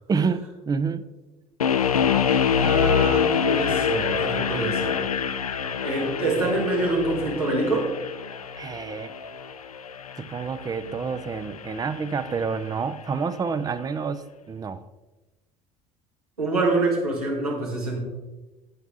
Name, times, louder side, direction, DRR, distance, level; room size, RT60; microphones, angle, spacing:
voice 1, 0.1-1.1 8.6-9.1 10.2-14.8, right 5 dB, 20° right, 14 dB, 0.6 m, -28 dB
sound 1, 1.6-12.6, left 7 dB, 80° left, 0.5 m, -26 dB
voice 2, 2.6-5.0 5.8-7.9 16.4-18.0, right 2 dB, 85° right, -4 dB, 2.7 m, -26 dB
11.0 x 8.3 x 3.7 m, 1.1 s
figure-of-eight pair, 60°, 19 cm